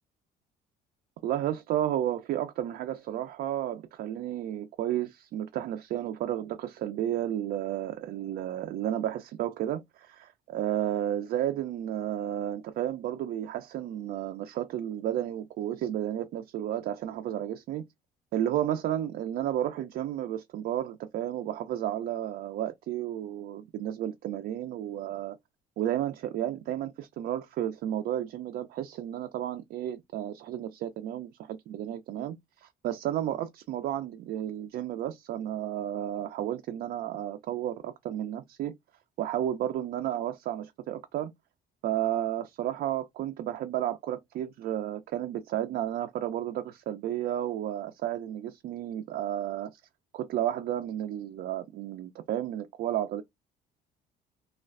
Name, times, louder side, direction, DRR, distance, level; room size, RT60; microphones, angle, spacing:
voice 1, 1.2-17.8 18.3-25.4 25.8-38.7 39.2-41.3 41.8-49.8 50.1-53.2, right 11 dB, 65° right, 0.4 m, -32 dB
3.1 x 2.4 x 2.3 m
cardioid pair, 110°, 17 cm